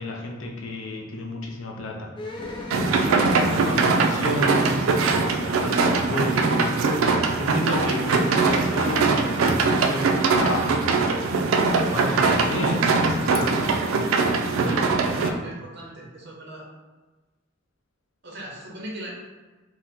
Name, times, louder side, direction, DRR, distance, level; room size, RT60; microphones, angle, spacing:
voice 1, 0.0-2.1 3.0-4.9 5.3-6.8 7.3-10.8 11.8-13.6 14.5-15.4, left 1 dB, 75° left, 0 dB, 0.5 m, -31 dB
sound 1, 2.2-7.6 7.9-8.0, left 1 dB, 25° left, 0.5 m, -39 dB
sound 2, 2.7-15.3, right 4 dB, 85° right, 0.3 m, -22 dB
voice 2, 14.9-16.7 18.2-19.1, right 1 dB, 60° right, -3 dB, 0.8 m, -39 dB
2.7 x 2.0 x 3.5 m, 1.2 s
head